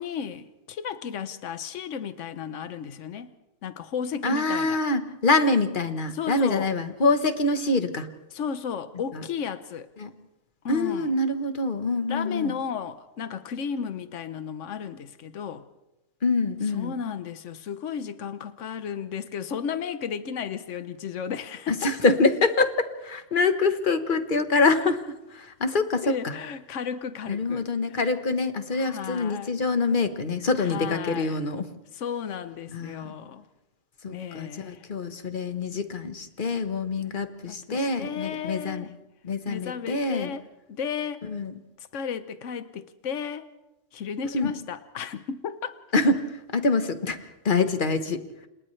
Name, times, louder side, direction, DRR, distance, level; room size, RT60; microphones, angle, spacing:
voice 1, 0.0-3.3 3.6-4.8 6.1-6.7 8.3-9.9 10.6-11.2 12.0-15.7 16.6-22.0 26.0-28.0 28.7-29.5 30.6-31.4 31.9-33.4 34.1-34.8 37.5-38.9 39.5-41.2 41.8-43.5 43.9-45.8, left 7 dB, 80° left, 1.2 m, -34 dB
voice 2, 4.2-8.1 10.0-10.1 10.7-12.5 16.2-16.9 21.7-25.0 25.3-26.3 27.3-31.7 32.7-33.1 34.0-38.9 39.2-40.3 41.3-41.5 44.3-44.5 45.9-47.2 47.4-48.2, left 3 dB, 45° left, 1.4 m, -25 dB
30.0 x 27.0 x 3.3 m
omnidirectional pair, 1.3 m